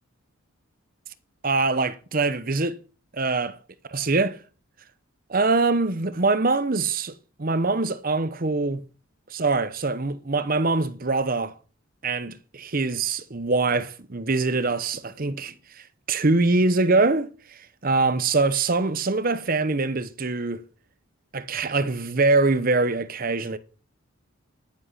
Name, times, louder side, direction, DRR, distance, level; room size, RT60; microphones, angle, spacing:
voice 1, 1.4-2.8 3.1-3.6 3.9-4.4 5.3-8.8 9.3-11.5 12.0-20.6 21.3-23.6, right 3 dB, 40° right, 0.8 m, -24 dB
10.5 x 10.0 x 5.6 m
head